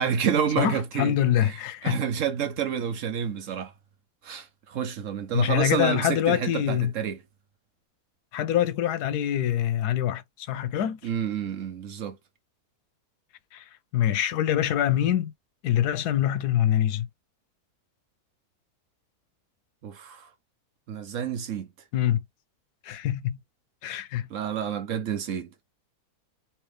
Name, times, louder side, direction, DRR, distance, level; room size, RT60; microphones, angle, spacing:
voice 1, 0.0-1.2 1.8-3.7 4.2-7.2 11.0-12.2 19.8-20.3 20.9-21.7 24.3-25.5, right 8 dB, 60° right, 1.0 m, -29 dB
voice 2, 0.6-2.0 5.3-6.9 8.3-11.0 13.5-13.6 13.9-15.3 15.6-17.1 21.9-22.2 22.8-23.4 23.8-24.3, left 11 dB, 90° left, 1.2 m, -25 dB
3.3 x 2.9 x 3.1 m
omnidirectional pair, 1.6 m